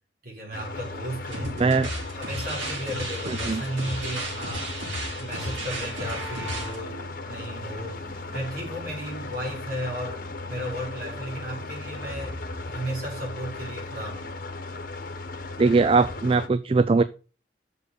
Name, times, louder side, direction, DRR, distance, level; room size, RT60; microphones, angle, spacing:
voice 1, 0.2-1.6 2.1-4.8 5.2-8.1 8.3-14.4, right 1 dB, 50° right, 4.8 m, -34 dB
sound 1, 0.5-16.5, left 3 dB, 45° left, 1.2 m, -37 dB
sound 2, 1.2-6.8, right 1 dB, 80° right, 4.6 m, -34 dB
voice 2, 1.6-1.9 3.3-3.6 15.6-17.0, right 4 dB, 30° right, 0.3 m, -20 dB
sound 3, 5.4-12.3, left 2 dB, ahead, 2.2 m, -48 dB
7.3 x 6.4 x 6.7 m
head